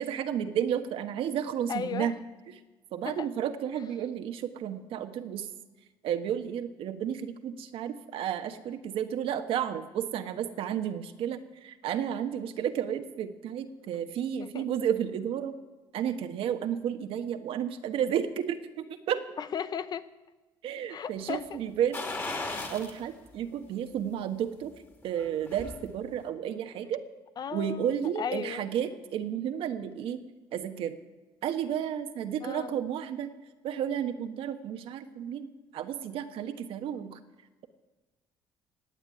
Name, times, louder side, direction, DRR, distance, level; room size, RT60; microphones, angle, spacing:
voice 1, 0.0-2.2 2.9-5.5 6.0-15.6 15.9-19.2 20.6-22.1 22.4-24.7 25.0-27.0 27.5-30.2 30.5-31.0 31.4-33.3 33.6-37.2, right 9 dB, 70° right, 8 dB, 1.3 m, -32 dB
voice 2, 1.7-2.1 3.0-3.3 14.4-14.7 19.4-20.1 20.9-21.6 22.3-22.6 27.4-28.6 32.4-32.8, left 7 dB, 45° left, 14 dB, 0.7 m, -36 dB
sound 1, 21.9-23.0 23.4-23.5 25.0-25.8 26.2-26.3, left 3 dB, 25° left, 2.7 m, -36 dB
18.0 x 7.4 x 9.6 m, 1.2 s
cardioid pair, 100°, 10 cm